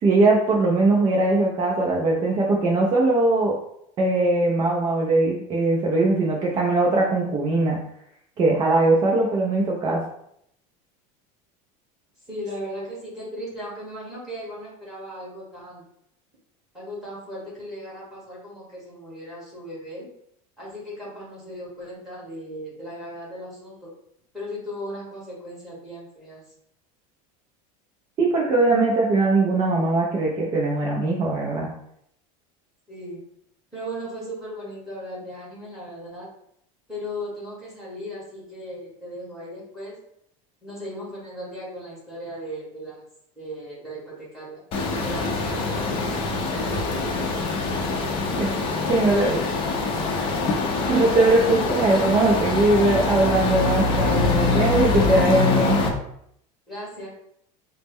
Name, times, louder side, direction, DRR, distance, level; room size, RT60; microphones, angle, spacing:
voice 1, 0.0-3.6 4.0-7.8 8.4-10.0 28.2-31.7 48.4-48.5 48.9-49.3 50.9-55.8, right 2 dB, 25° right, -2 dB, 0.3 m, -20 dB
voice 2, 12.3-15.8 16.7-20.1 20.6-23.9 24.3-26.4 32.9-33.2 33.7-36.3 36.9-40.0 40.6-43.0 43.4-44.6 45.0-45.8 49.0-49.4 56.7-57.1, equal, ahead, -7 dB, 1.3 m, -37 dB
sound 1, 44.7-55.9, left 3 dB, 30° left, 0.5 m, -24 dB
4.1 x 2.0 x 3.5 m, 0.73 s
cardioid pair, 170°, 17 cm